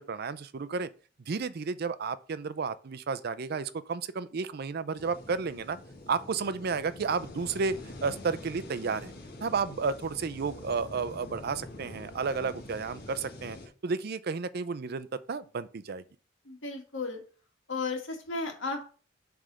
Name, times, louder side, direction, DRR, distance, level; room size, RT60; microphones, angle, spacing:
voice 1, 0.1-0.9 1.3-5.8 6.1-9.1 9.4-13.6 13.8-16.0, right 5 dB, 55° right, 0.5 m, -32 dB
sound 1, 5.0-13.7, left 1 dB, 55° left, 1.5 m, -46 dB
voice 2, 16.4-17.2 17.7-18.8, left 3 dB, 80° left, 2.0 m, -34 dB
7.5 x 3.4 x 6.2 m
head